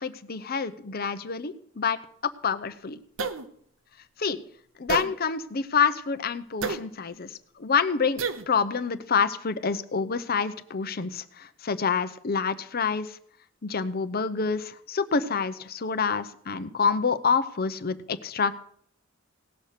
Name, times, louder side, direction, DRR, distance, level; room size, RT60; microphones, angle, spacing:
voice 1, 0.0-2.0 2.4-3.0 4.2-4.4 4.8-13.2 13.6-18.6, left 5 dB, 50° left, 12 dB, 0.8 m, -27 dB
sound 1, 3.2-3.5 4.9-5.1 6.6-6.8 8.2-8.5, right 5 dB, 75° right, 0.9 m, -29 dB
18.0 x 6.0 x 6.7 m, 0.65 s
head